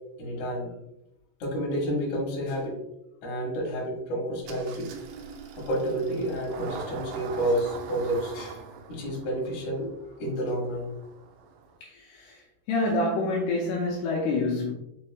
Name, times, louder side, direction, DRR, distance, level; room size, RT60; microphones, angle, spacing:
voice 1, 0.2-0.7 1.4-2.8 3.2-4.9 5.6-8.6 8.9-9.9 10.2-10.9, right 1 dB, 55° left, -4 dB, 2.4 m, -30 dB
Engine starting, 4.4-11.8, right 5 dB, 90° right, 2.0 m, -42 dB
voice 2, 11.8-12.4 12.7-14.7, left 2 dB, 80° left, -2 dB, 2.6 m, -27 dB
6.8 x 3.0 x 2.3 m, 0.85 s
omnidirectional pair, 4.9 m